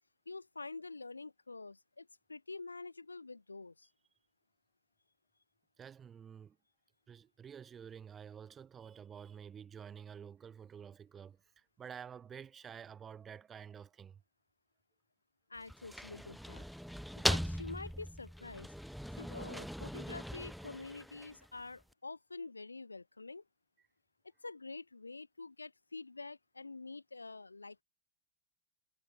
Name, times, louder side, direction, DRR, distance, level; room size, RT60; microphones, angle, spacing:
voice 1, 0.3-3.9 15.5-16.6 17.2-18.7 19.2-23.4 24.4-27.8, left 3 dB, 80° left, 4.5 m, -47 dB
voice 2, 5.8-6.6 7.1-14.2, right 7 dB, 20° right, 3.1 m, -50 dB
sound 1, 15.6-21.6, equal, ahead, 1.5 m, -39 dB
figure-of-eight pair, 90°, 0 cm